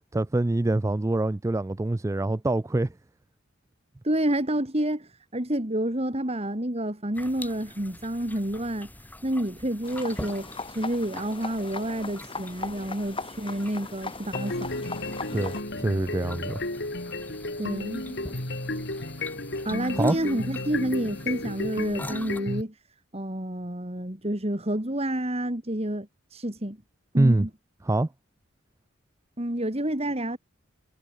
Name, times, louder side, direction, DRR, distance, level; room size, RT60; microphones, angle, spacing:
voice 1, 0.1-2.9 15.3-16.6 19.9-20.2 27.2-27.5 27.8-28.1, right 2 dB, 15° right, 0.3 m, -25 dB
voice 2, 4.0-8.9 9.2-14.7 17.6-18.2 19.6-22.8 23.1-26.8 27.1-27.5 29.4-30.4, right 1 dB, 30° right, 2.8 m, -29 dB
sound 1, 7.1-22.4, left 1 dB, 10° left, 3.3 m, -45 dB
sound 2, 9.8-15.6, left 3 dB, 25° left, 7.9 m, -39 dB
sound 3, 14.3-22.6, left 2 dB, 55° left, 4.7 m, -33 dB
head